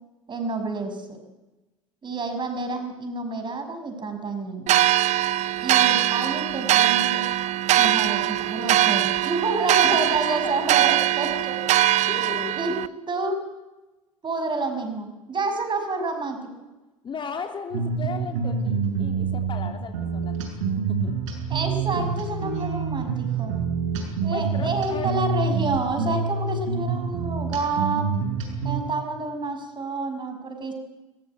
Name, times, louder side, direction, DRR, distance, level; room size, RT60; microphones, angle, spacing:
voice 1, 0.3-1.2 2.0-4.9 5.6-7.2 7.8-11.6 12.6-12.7 13.1-13.4 14.2-16.5 21.5-23.6 24.2-28.1 28.6-30.7, right 3 dB, 25° right, 7 dB, 6.1 m, -29 dB
sound 1, 4.7-12.9, right 13 dB, 45° right, 0.9 m, -21 dB
voice 2, 9.8-10.5 12.1-12.6 17.0-20.4 20.7-21.1 24.3-25.2, left 5 dB, 30° left, 5 dB, 3.2 m, -35 dB
sound 2, 17.7-28.8, right 5 dB, 65° right, 7.0 m, -27 dB
22.5 x 22.0 x 9.1 m, 1.1 s
figure-of-eight pair, 70°, 17 cm